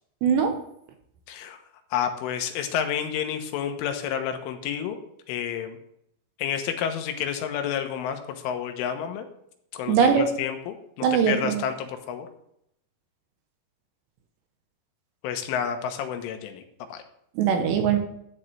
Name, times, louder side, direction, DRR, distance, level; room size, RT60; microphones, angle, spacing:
voice 1, 0.2-0.6 9.9-10.3 11.0-11.6 17.4-18.0, right 7 dB, 75° right, 5 dB, 2.9 m, -21 dB
voice 2, 1.3-1.6 1.9-5.0 5.3-5.8 6.4-9.3 9.7-12.3 15.2-16.6 16.9-17.0, left 8 dB, 85° left, 6 dB, 3.6 m, -30 dB
12.0 x 9.9 x 3.3 m, 0.73 s
omnidirectional pair, 5.5 m